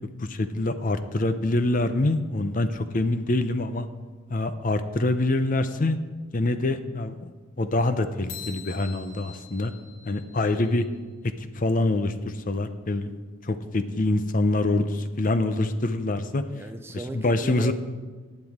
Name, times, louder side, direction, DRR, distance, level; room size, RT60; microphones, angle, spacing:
voice 1, 0.2-3.9 4.3-6.0 6.3-7.3 7.6-9.7 10.1-10.8 11.5-13.1 13.4-16.4 16.9-17.7, left 2 dB, 40° left, 10 dB, 0.6 m, -25 dB
sound 1, 8.3-10.9, left 6 dB, 75° left, 2.3 m, -44 dB
voice 2, 16.4-17.7, right 2 dB, 10° right, 7 dB, 0.4 m, -37 dB
15.0 x 9.6 x 3.6 m, 1.4 s
head